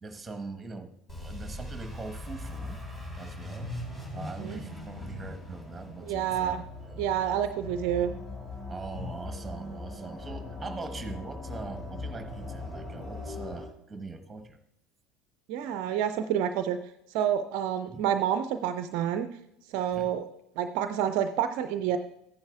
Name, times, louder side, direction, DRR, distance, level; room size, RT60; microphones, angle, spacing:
voice 1, 0.0-2.9 3.2-3.8 4.1-7.4 8.7-14.6 17.9-18.0 19.9-20.1, right 3 dB, 15° right, 7 dB, 1.1 m, -42 dB
sound 1, 1.1-4.2 5.0-5.4 6.3-9.5 10.3-10.7 11.6-12.9, left 5 dB, 60° left, 1.4 m, -44 dB
sound 2, 1.1-7.7, equal, 25° left, 3.3 m, -42 dB
sound 3, 3.6-13.7, left 2 dB, 40° left, 2.7 m, -42 dB
voice 2, 6.0-6.6 7.0-8.1 15.5-16.8 17.1-19.3 19.7-20.3 20.6-22.0, right 9 dB, 55° right, 10 dB, 0.4 m, -28 dB
14.5 x 10.5 x 2.3 m, 0.80 s
figure-of-eight pair, 70°, 0 cm